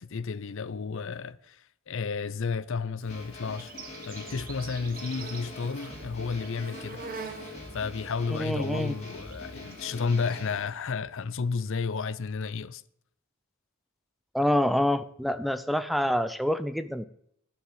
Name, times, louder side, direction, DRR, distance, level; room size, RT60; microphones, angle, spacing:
voice 1, 0.0-3.7 4.1-7.0 7.7-12.8, left 5 dB, 60° left, 0.5 m, -32 dB
Insect, 3.0-10.6, right 5 dB, 40° right, 1.4 m, -45 dB
sound 1, 3.1-10.8, left 2 dB, 30° left, 3.2 m, -44 dB
voice 2, 8.3-8.9 14.3-17.1, equal, ahead, 0.4 m, -26 dB
11.5 x 6.0 x 8.9 m
head